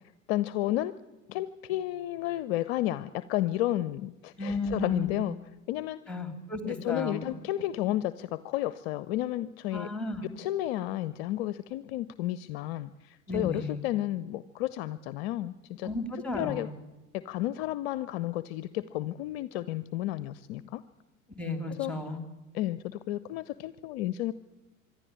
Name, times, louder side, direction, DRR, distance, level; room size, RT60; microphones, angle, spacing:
voice 1, 0.3-0.9 1.3-5.4 5.7-6.0 6.6-9.9 10.4-15.9 16.3-16.7 17.1-20.8 21.7-22.0 22.5-24.3, left 14 dB, 45° left, 16 dB, 0.7 m, -32 dB
voice 2, 4.4-5.2 6.1-7.2 9.7-10.3 13.3-13.8 15.8-16.7 21.4-22.2, left 2 dB, 5° left, 8 dB, 3.0 m, -34 dB
25.5 x 11.5 x 9.9 m, 1.1 s
figure-of-eight pair, 80°, 42 cm